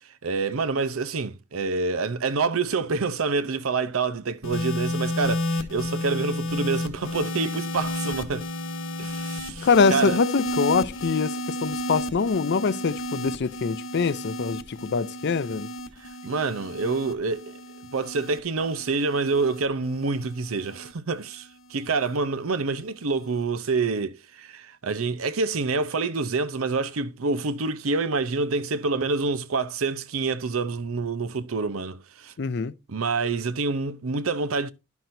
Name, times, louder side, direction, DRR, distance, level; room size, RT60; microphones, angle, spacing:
voice 1, 0.2-8.5 9.0-10.2 16.0-17.6 17.9-32.3 32.9-34.7, right 4 dB, 90° right, 0.7 m, -27 dB
sound 1, 4.4-20.9 21.8-22.2, left 1 dB, 80° left, 1.1 m, -32 dB
voice 2, 9.6-15.7 32.4-32.7, left 5 dB, 55° left, 0.5 m, -24 dB
11.5 x 5.9 x 2.6 m
head